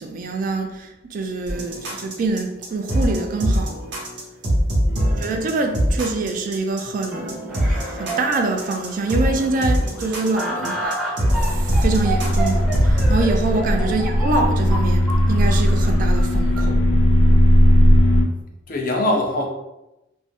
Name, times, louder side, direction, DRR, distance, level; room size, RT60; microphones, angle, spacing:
voice 1, 0.0-3.8 5.0-11.0 11.4-16.8, right 3 dB, 45° right, 0.3 m, -25 dB
sound 1, 1.5-13.2, equal, 65° right, 0.8 m, -23 dB
voice 2, 4.8-5.3 10.6-10.7 13.8-14.1 18.7-19.5, left 1 dB, 45° left, 0.5 m, -25 dB
sound 2, 7.5-16.6, right 1 dB, ahead, 0.6 m, -31 dB
sound 3, 11.2-18.2, equal, 90° left, 0.7 m, -17 dB
2.5 x 2.0 x 3.4 m
head